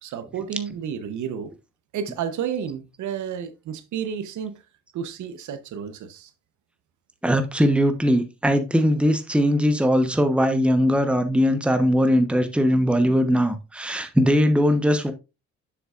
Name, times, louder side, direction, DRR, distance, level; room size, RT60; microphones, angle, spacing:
voice 1, 0.0-1.5 1.9-4.6 4.9-6.3 13.9-14.0, right 8 dB, 75° right, 1.0 m, -31 dB
voice 2, 7.2-15.1, equal, 5° right, 1.0 m, -20 dB
7.1 x 7.0 x 2.5 m
cardioid pair, 90°, 30 cm